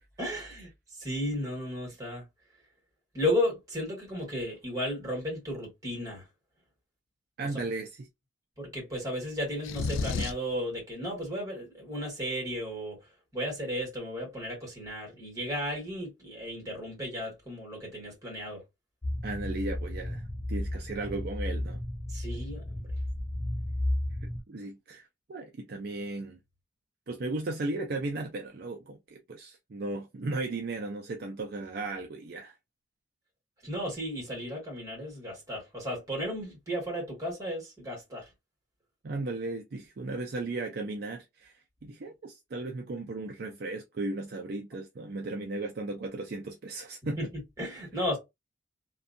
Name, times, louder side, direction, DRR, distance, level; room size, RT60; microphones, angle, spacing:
voice 1, 0.2-2.2 3.1-6.2 7.5-7.6 8.6-13.0 13.3-18.6 22.1-22.9 33.6-38.3 47.2-47.3 47.6-48.2, equal, 20° right, 1.5 m, -34 dB
voice 2, 7.4-8.1 19.2-21.8 24.5-26.4 27.1-32.5 39.0-41.5 41.8-47.2, right 2 dB, 50° right, 0.4 m, -36 dB
sound 1, 9.6-10.5, left 4 dB, 90° left, 0.4 m, -31 dB
sound 2, 19.0-24.4, left 1 dB, 15° left, 0.4 m, -33 dB
2.6 x 2.3 x 2.5 m
head